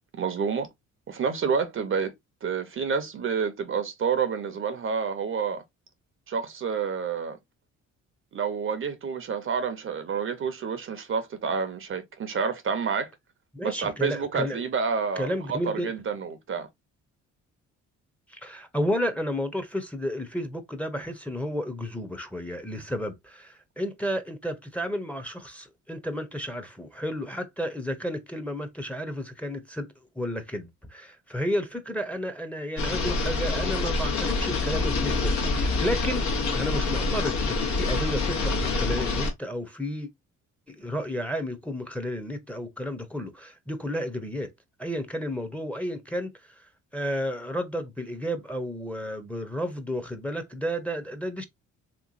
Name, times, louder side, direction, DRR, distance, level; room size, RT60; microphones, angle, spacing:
voice 1, 0.2-0.7 1.1-2.1 2.4-5.6 6.3-7.4 8.3-13.1 13.6-16.7, right 6 dB, 45° right, 0.6 m, -29 dB
voice 2, 13.5-14.6 15.2-15.9 18.3-29.9 30.2-40.1 40.7-44.5 44.8-51.4, equal, 5° left, 0.7 m, -32 dB
sound 1, 32.8-39.3, left 3 dB, 70° left, 1.1 m, -26 dB
3.2 x 3.0 x 2.5 m
cardioid pair, 90°, 30 cm